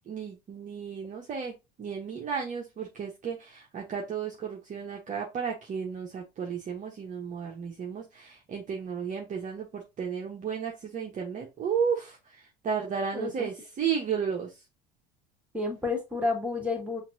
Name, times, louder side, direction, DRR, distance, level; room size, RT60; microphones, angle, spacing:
voice 1, 0.1-14.5, right 7 dB, 35° right, -1 dB, 1.0 m, -33 dB
voice 2, 13.1-13.5 15.5-17.0, left 3 dB, 5° right, -1 dB, 2.0 m, -30 dB
5.7 x 2.7 x 2.7 m, 0.23 s
hypercardioid pair, 80°, 21 cm